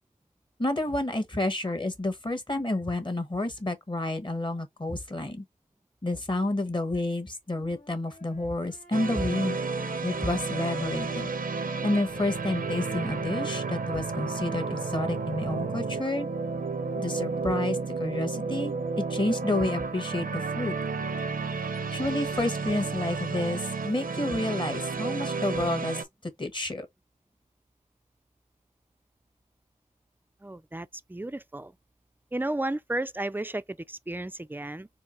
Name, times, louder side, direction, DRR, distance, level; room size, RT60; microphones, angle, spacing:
voice 1, 0.6-5.4 6.0-9.6 10.0-11.3 11.8-16.3 16.9-20.7 21.9-26.9, left 2 dB, 35° left, 1.3 m, -30 dB
sound 1, 7.5-11.4 11.6-16.0, left 3 dB, 75° left, 1.7 m, -49 dB
sound 2, 8.9-26.0, right 4 dB, 90° right, 0.8 m, -32 dB
voice 2, 30.4-31.7 32.3-34.9, right 1 dB, 15° right, 0.4 m, -33 dB
4.5 x 2.0 x 4.3 m
wide cardioid pair, 55°, 14 cm